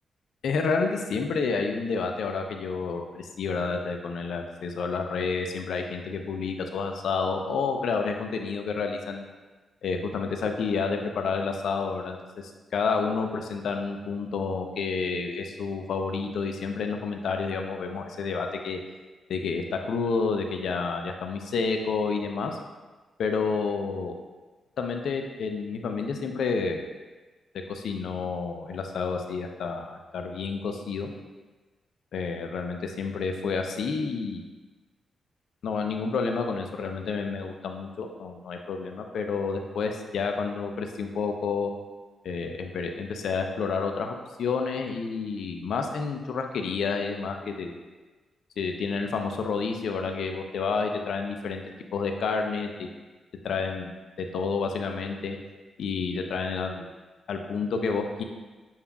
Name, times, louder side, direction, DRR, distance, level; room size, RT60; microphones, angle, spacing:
voice 1, 0.4-9.3 9.8-12.2 12.4-18.8 19.3-22.6 23.2-24.1 24.8-26.8 27.7-31.1 32.1-34.4 35.6-41.7 42.2-47.7 48.6-51.6 51.9-52.9 53.4-55.4 55.8-56.9 57.3-58.2, left 4 dB, 80° left, 4 dB, 0.4 m, -29 dB
6.8 x 2.3 x 2.3 m, 1.3 s
cardioid pair, 65°, 0 cm